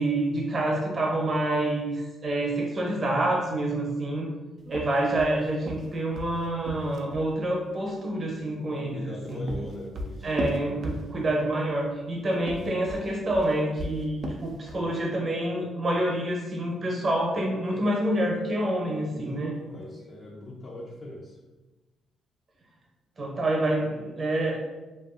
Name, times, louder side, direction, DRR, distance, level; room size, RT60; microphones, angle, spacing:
voice 1, 0.0-4.3 4.7-9.5 10.2-19.5 23.2-24.6, right 1 dB, 35° right, -1 dB, 0.7 m, -27 dB
sound 1, 4.7-7.3 9.0-11.4 12.3-14.9, right 1 dB, 55° right, 0.3 m, -36 dB
voice 2, 8.7-10.3 19.1-21.3, left 1 dB, 40° left, -3 dB, 0.6 m, -40 dB
2.5 x 2.3 x 2.5 m, 1.1 s
cardioid pair, 90°, 0 cm